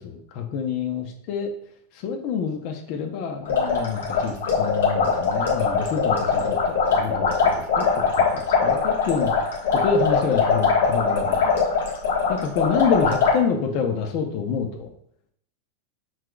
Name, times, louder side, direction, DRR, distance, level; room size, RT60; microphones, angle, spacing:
voice 1, 0.0-1.5 1.9-9.3 9.7-11.5 12.3-14.9, left 6 dB, 55° left, 4 dB, 0.8 m, -27 dB
sound 1, 3.4-13.4, left 5 dB, 85° left, 1.6 m, -22 dB
5.8 x 3.2 x 2.4 m, 0.69 s
supercardioid pair, 130°, 0 cm